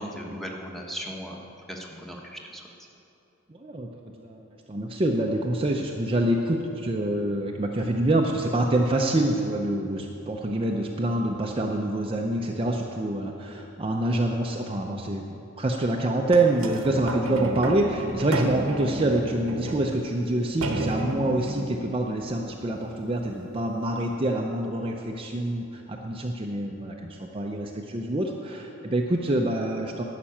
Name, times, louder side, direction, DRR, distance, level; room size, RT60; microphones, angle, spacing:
voice 1, 0.0-1.4 1.7-2.6, equal, ahead, -1 dB, 1.2 m, -37 dB
voice 2, 3.5-4.4 4.7-15.2 15.6-30.0, right 1 dB, 25° right, 0 dB, 0.6 m, -26 dB
sound 1, 16.6-23.3 24.0-24.1, right 1 dB, 75° right, 1.0 m, -33 dB
11.5 x 5.9 x 8.7 m, 2.8 s
head